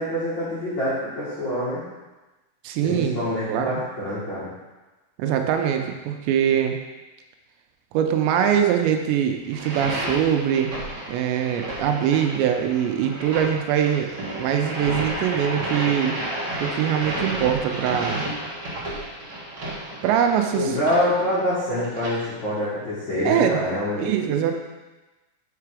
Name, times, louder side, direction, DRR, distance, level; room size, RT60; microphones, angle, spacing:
voice 1, 0.0-1.8 2.8-4.5 20.5-24.3, left 1 dB, 70° left, -11 dB, 1.1 m, -26 dB
voice 2, 2.6-3.2 3.5-3.7 5.2-6.8 7.9-10.7 11.1-14.1 14.4-16.2 16.6-18.2 20.0-20.7 23.3-23.6 24.0-24.5, right 9 dB, 85° right, 4 dB, 2.8 m, -22 dB
sound 1, 9.4-22.1, right 1 dB, 70° right, 1.1 m, -32 dB
5.8 x 5.4 x 4.8 m, 1.1 s
omnidirectional pair, 5.2 m